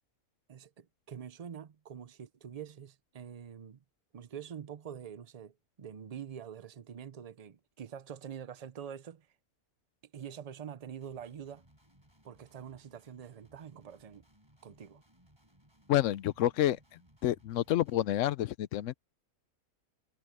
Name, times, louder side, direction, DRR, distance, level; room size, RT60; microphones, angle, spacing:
voice 1, 0.5-3.8 4.1-9.3 10.1-11.6 12.2-14.2 14.6-15.0, right 8 dB, 55° right, 0.4 m, -45 dB
Guitar, 11.0-18.2, equal, 15° right, 5.7 m, -65 dB
voice 2, 15.9-16.8 17.2-18.9, left 13 dB, 65° left, 0.8 m, -28 dB
omnidirectional pair, 1.6 m